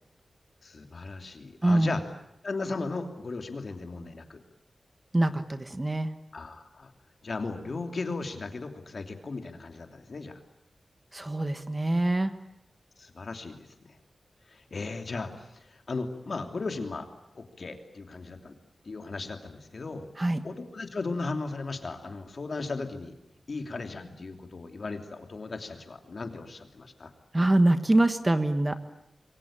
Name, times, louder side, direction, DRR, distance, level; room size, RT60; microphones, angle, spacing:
voice 1, 0.6-2.0 2.4-4.4 6.3-6.9 7.2-10.4 13.0-13.7 14.5-17.1 17.3-18.5 18.8-20.1 20.4-23.1 23.5-27.1, left 3 dB, 50° left, 6 dB, 2.9 m, -36 dB
voice 2, 1.6-1.9 5.1-6.1 11.1-12.3 20.2-20.4 27.3-28.8, right 1 dB, 20° right, 10 dB, 1.4 m, -24 dB
27.5 x 22.5 x 8.8 m, 0.83 s
wide cardioid pair, 135°, 0 cm